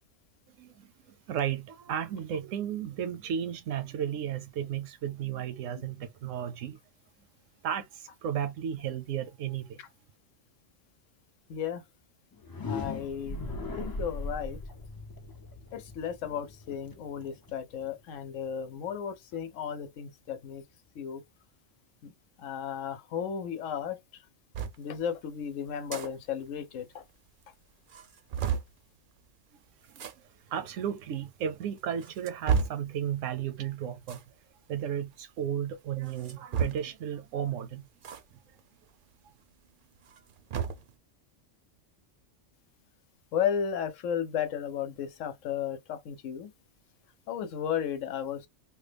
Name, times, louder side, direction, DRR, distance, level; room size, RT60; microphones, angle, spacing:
voice 1, 0.6-6.8 7.6-9.8 29.9-30.0 30.5-34.2 34.7-37.9, right 9 dB, 85° right, 1.0 m, -34 dB
voice 2, 11.5-11.8 12.7-13.4 13.8-14.6 15.7-20.6 21.0-21.2 22.4-24.0 24.8-27.0 43.3-46.5 47.3-48.4, left 8 dB, 85° left, 1.0 m, -34 dB
sound 1, 12.3-18.2, left 2 dB, 30° left, 0.4 m, -39 dB
sound 2, 24.5-24.8 25.7-26.1 26.4-26.5 26.8-26.9 27.4-27.5 27.9-28.7 29.9-30.1 31.0-31.1 31.8-32.9 34.0-34.3 36.1-37.0 38.0-38.2 38.6-38.7 40.0-40.9, right 6 dB, 55° right, 0.6 m, -32 dB
3.1 x 2.2 x 3.3 m
omnidirectional pair, 1.3 m